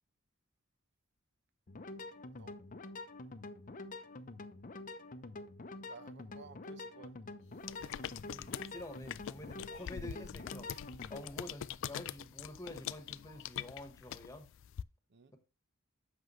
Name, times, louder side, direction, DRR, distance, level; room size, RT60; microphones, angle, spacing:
sound 1, 1.7-11.3, left 2 dB, 40° left, 0.7 m, -47 dB
voice 1, 5.9-8.1 15.1-15.3, right 4 dB, 55° right, 0.7 m, -57 dB
sound 2, 7.6-14.8, left 10 dB, 65° left, 0.3 m, -44 dB
voice 2, 8.2-10.7 11.1-14.5, left 1 dB, 15° left, 1.3 m, -48 dB
7.9 x 6.2 x 3.1 m
head